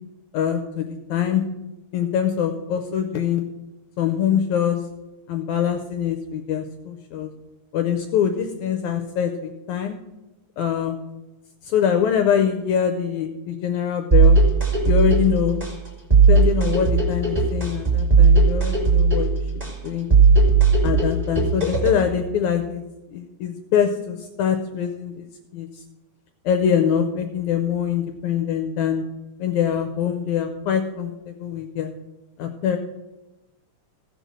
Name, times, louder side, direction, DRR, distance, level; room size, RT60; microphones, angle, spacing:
voice 1, 0.3-1.4 1.9-3.4 4.0-4.8 5.3-7.3 7.7-10.0 10.6-11.0 11.6-14.4 14.8-15.7 16.3-19.4 19.8-20.1 20.8-22.8 23.1-25.3 25.5-25.7 26.5-29.0 29.4-31.9 32.4-32.8, left 8 dB, 75° left, 7 dB, 1.8 m, -23 dB
sound 1, 14.1-22.1, right 4 dB, 10° right, 2.3 m, -17 dB
16.0 x 5.3 x 6.3 m, 1.0 s
omnidirectional pair, 3.9 m